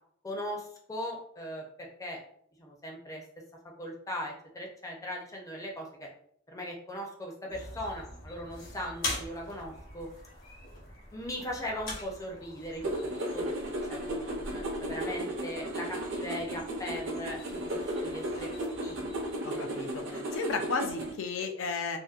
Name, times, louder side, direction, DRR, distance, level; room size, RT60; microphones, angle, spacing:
voice 1, 0.2-1.6 2.0-2.2 2.6-3.2 3.8-6.1 6.5-10.1 11.1-18.5 18.8-19.1 20.1-20.3, equal, 15° left, 0 dB, 0.5 m, -39 dB
sound 1, 7.5-19.3, left 2 dB, 55° left, 0.9 m, -44 dB
sound 2, 12.8-21.1, right 1 dB, 70° right, 0.6 m, -35 dB
voice 2, 19.4-22.0, left 4 dB, 80° left, 5 dB, 0.4 m, -34 dB
2.6 x 2.1 x 2.3 m, 0.66 s
head